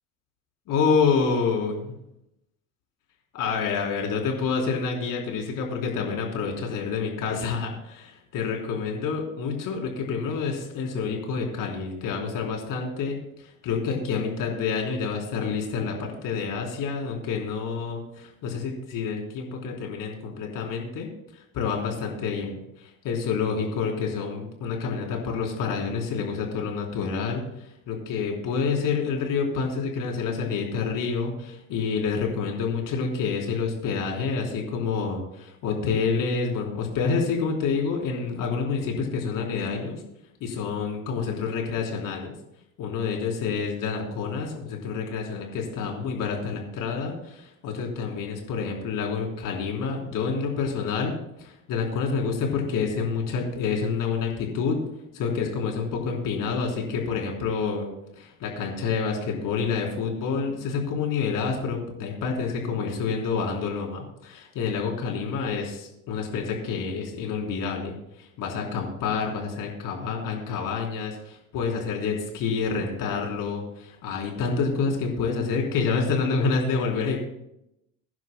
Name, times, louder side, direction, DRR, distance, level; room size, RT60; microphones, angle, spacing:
voice 1, 0.7-1.8 3.3-40.0 40.4-42.3 42.8-51.1 51.4-54.8 55.1-77.3, left 5 dB, 55° left, 0 dB, 4.1 m, -28 dB
22.5 x 10.5 x 2.3 m, 0.83 s
hypercardioid pair, 75°, 39 cm